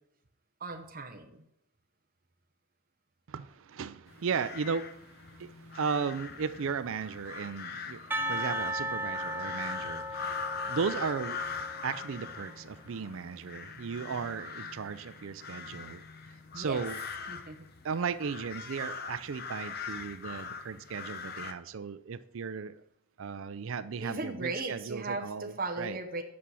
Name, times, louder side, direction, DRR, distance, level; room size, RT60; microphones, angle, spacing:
voice 1, 0.6-1.4 16.5-16.8 17.3-17.6 24.0-26.2, right 3 dB, 40° right, 0.9 m, -37 dB
voice 2, 3.3-16.0 16.3-17.0 17.8-22.8 23.2-26.0, right 6 dB, 70° right, 0.4 m, -36 dB
sound 1, 4.1-21.5, left 5 dB, 45° left, 0.8 m, -42 dB
Percussion, 8.1-12.0, equal, 10° right, 0.7 m, -36 dB
8.5 x 6.2 x 6.9 m
head